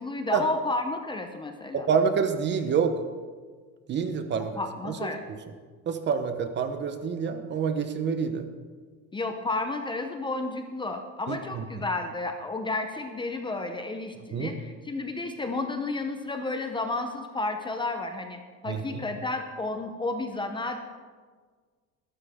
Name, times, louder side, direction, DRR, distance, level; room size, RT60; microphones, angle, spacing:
voice 1, 0.0-1.9 4.6-5.2 9.1-20.8, left 2 dB, 15° left, 5 dB, 0.7 m, -32 dB
voice 2, 1.7-2.9 3.9-4.5 4.8-4.9 5.9-8.5 11.3-11.6 14.3-14.5 18.7-19.0, right 6 dB, 30° right, 8 dB, 1.0 m, -27 dB
21.5 x 12.5 x 3.6 m, 1.5 s
cardioid pair, 160°, 36 cm